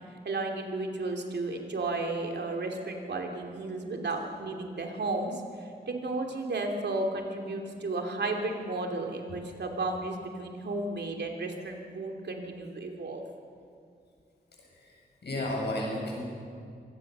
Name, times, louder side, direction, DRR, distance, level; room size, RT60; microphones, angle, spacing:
voice 1, 0.2-13.2, right 2 dB, 80° right, 2 dB, 3.0 m, -33 dB
voice 2, 14.6-16.2, left 1 dB, 75° left, -2 dB, 7.6 m, -33 dB
25.0 x 19.0 x 6.9 m, 2.4 s
wide cardioid pair, 110°, 18 cm